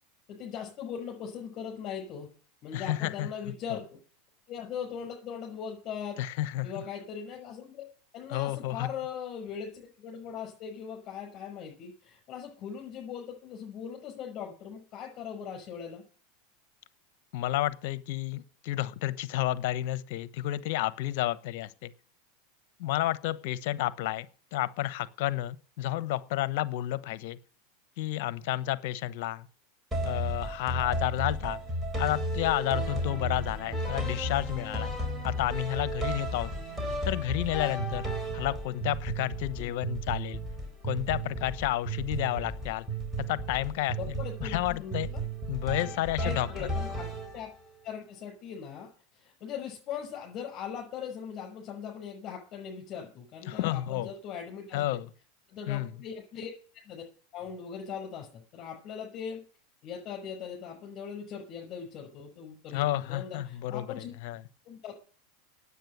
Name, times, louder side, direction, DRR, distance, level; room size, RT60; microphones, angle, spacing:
voice 1, 0.3-2.3 2.6-4.0 4.5-6.2 6.6-7.9 8.1-16.0 39.6-39.8 44.0-45.2 46.2-47.1 47.3-47.5 47.8-55.0 55.5-57.0 57.3-59.4 59.8-64.1 64.7-64.9, left 7 dB, 40° left, 0 dB, 6.0 m, -40 dB
voice 2, 2.7-3.3 3.7-3.8 6.2-6.8 8.3-8.9 17.3-21.9 22.8-24.3 24.5-27.4 28.0-29.5 30.1-31.6 32.0-35.0 35.2-36.5 37.0-38.1 38.3-40.4 40.8-42.9 43.2-45.1 45.5-46.7 53.4-54.1 54.7-55.1 55.7-55.9 62.7-64.4, left 15 dB, 65° left, 16 dB, 0.9 m, -31 dB
sound 1, 29.9-47.7, right 1 dB, 10° right, 3.9 m, -34 dB
9.3 x 8.4 x 9.2 m, 0.41 s
hypercardioid pair, 105°, 0 cm